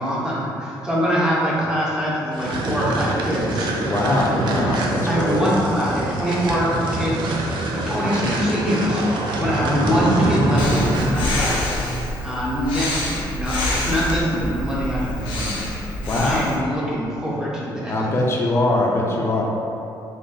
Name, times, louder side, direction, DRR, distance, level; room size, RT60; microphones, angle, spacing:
voice 1, 0.0-3.7 4.2-7.3 7.7-9.0 9.4-11.8 12.2-13.6 13.8-17.9 19.2-19.3, equal, 5° right, -7 dB, 0.8 m, -24 dB
sound 1, 2.3-11.3, right 2 dB, 70° right, 0.5 m, -24 dB
voice 2, 3.9-5.5 7.8-8.1 8.5-8.9 16.1-16.4 17.9-19.4, left 2 dB, 30° left, -2 dB, 0.5 m, -22 dB
Breathing, 10.6-16.6, left 1 dB, 85° left, 0.7 m, -26 dB
3.3 x 2.4 x 3.8 m, 2.7 s
cardioid pair, 145°, 8 cm